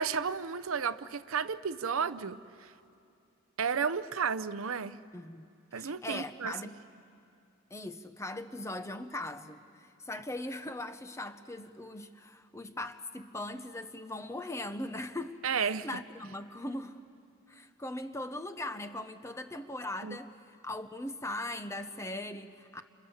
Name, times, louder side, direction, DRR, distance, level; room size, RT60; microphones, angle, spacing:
voice 1, 0.0-2.7 3.6-5.0 5.7-6.5 15.4-15.9 20.0-20.2, right 6 dB, 75° right, 0.7 m, -32 dB
voice 2, 5.1-5.5 5.7-6.8 7.7-17.0 17.5-20.4 20.6-22.8, left 1 dB, 15° left, 0.8 m, -40 dB
30.0 x 27.5 x 7.2 m
head